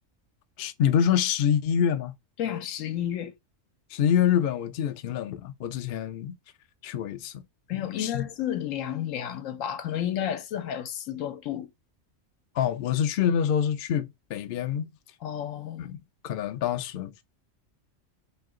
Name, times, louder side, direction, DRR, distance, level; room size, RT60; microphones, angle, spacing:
voice 1, 0.6-2.1 3.9-6.4 6.8-7.4 7.7-8.3 12.6-14.9 15.8-17.1, left 9 dB, 60° left, 0.6 m, -26 dB
voice 2, 2.4-3.3 7.7-11.7 15.2-15.9, left 10 dB, 85° left, 1.0 m, -31 dB
3.1 x 2.8 x 3.6 m
omnidirectional pair, 1.3 m